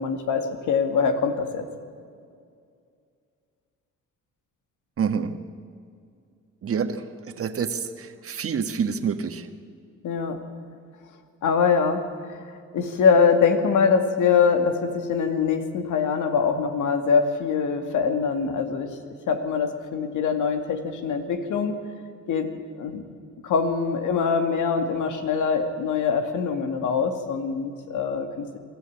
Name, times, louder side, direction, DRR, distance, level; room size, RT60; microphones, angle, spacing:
voice 1, 0.0-1.7 10.0-10.4 11.4-12.0 12.3-12.4 12.7-18.9 19.3-21.8 22.3-22.5 22.8-23.1 23.4-28.6, left 6 dB, 80° left, 6 dB, 2.1 m, -23 dB
voice 2, 5.0-5.3 6.6-7.0 7.4-9.5, right 6 dB, 50° right, 8 dB, 1.6 m, -27 dB
23.0 x 13.5 x 8.7 m, 2.3 s
cardioid pair, 90°, 30 cm